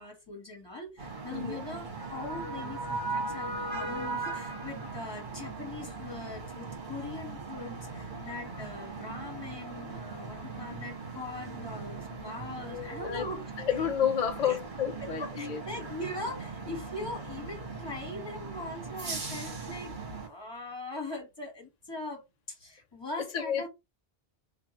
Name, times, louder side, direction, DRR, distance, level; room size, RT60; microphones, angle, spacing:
voice 1, 0.0-13.4 14.4-14.6 15.0-19.9 20.3-23.7, left 2 dB, 25° left, 1.8 m, -41 dB
sound 1, 1.0-20.3, right 3 dB, 50° right, 1.4 m, -39 dB
voice 2, 1.3-1.6 12.6-13.3 13.6-15.6 23.3-23.7, left 8 dB, 45° left, 0.6 m, -30 dB
3.4 x 2.6 x 4.2 m
omnidirectional pair, 1.1 m